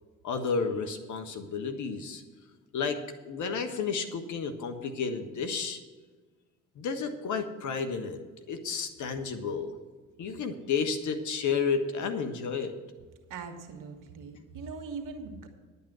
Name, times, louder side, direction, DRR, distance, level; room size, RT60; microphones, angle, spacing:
voice 1, 0.2-2.2 2.7-5.8 6.7-8.2 8.5-9.8 10.2-12.8, left 5 dB, 55° left, 7 dB, 1.4 m, -31 dB
voice 2, 13.3-15.5, right 4 dB, 65° right, 6 dB, 1.7 m, -41 dB
11.0 x 8.4 x 6.2 m, 1.4 s
hypercardioid pair, 50°, 34 cm